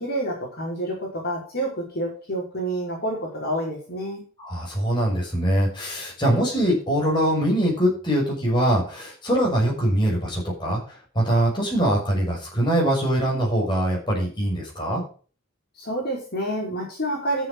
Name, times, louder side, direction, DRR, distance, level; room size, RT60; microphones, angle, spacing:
voice 1, 0.0-4.2 15.8-17.5, right 1 dB, 50° left, -2 dB, 5.1 m, -28 dB
voice 2, 4.4-15.0, right 1 dB, 20° left, -2 dB, 6.3 m, -23 dB
13.0 x 7.7 x 4.8 m, 0.39 s
head